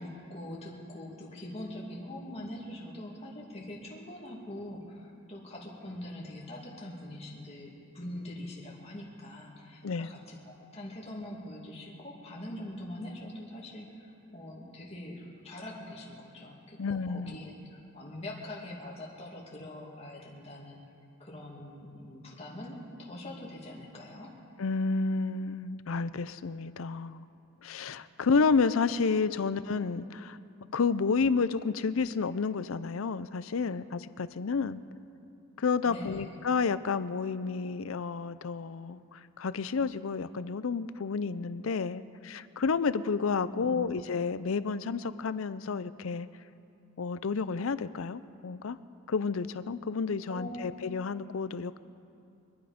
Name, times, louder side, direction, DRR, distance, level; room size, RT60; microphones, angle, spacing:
voice 1, 0.0-20.8 21.2-24.3 35.8-36.3 43.5-43.8 50.3-50.5, left 1 dB, 30° left, -3 dB, 2.5 m, -43 dB
voice 2, 16.8-17.3 24.6-27.3 27.6-30.4 30.7-34.8 35.6-46.3 47.0-48.8 49.1-51.8, left 5 dB, 80° left, 14 dB, 0.5 m, -30 dB
25.0 x 10.0 x 5.2 m, 2.6 s
head